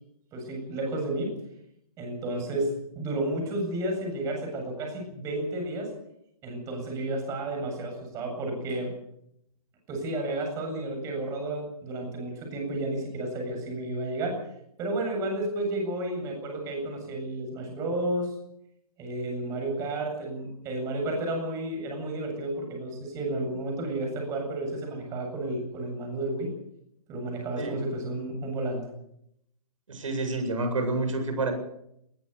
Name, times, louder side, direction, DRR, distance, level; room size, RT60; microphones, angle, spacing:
voice 1, 0.3-1.4 2.0-5.9 6.4-8.9 9.9-14.4 14.8-18.3 19.0-26.5 27.1-28.9, right 1 dB, 15° right, 2 dB, 7.9 m, -32 dB
voice 2, 29.9-31.5, right 2 dB, 55° right, 6 dB, 8.0 m, -28 dB
21.0 x 20.0 x 6.8 m, 0.75 s
figure-of-eight pair, 135°, 20 cm